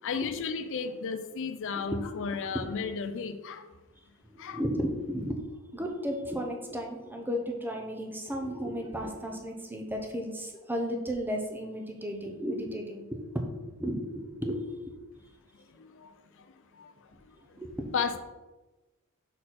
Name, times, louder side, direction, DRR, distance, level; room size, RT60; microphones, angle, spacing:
voice 1, 0.0-3.6 4.4-4.6 15.8-16.5 16.7-16.9 17.9-18.1, left 5 dB, 60° left, 8 dB, 0.5 m, -34 dB
voice 2, 4.3-14.9 17.6-17.9, equal, 10° right, 2 dB, 0.8 m, -34 dB
6.1 x 4.3 x 4.2 m, 1.1 s
head